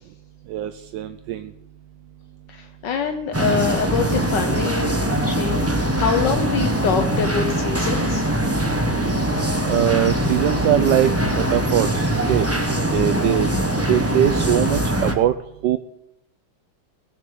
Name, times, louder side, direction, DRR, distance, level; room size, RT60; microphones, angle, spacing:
voice 1, 0.5-1.5 9.7-12.5 12.9-13.5 13.9-15.3 15.6-15.8, right 12 dB, 80° right, 9 dB, 1.3 m, -21 dB
voice 2, 2.5-4.9 5.3-8.2, left 6 dB, 75° left, 6 dB, 1.6 m, -25 dB
sound 1, 3.3-15.1, right 1 dB, 10° right, 1.0 m, -22 dB
17.5 x 7.4 x 7.0 m, 0.85 s
omnidirectional pair, 1.9 m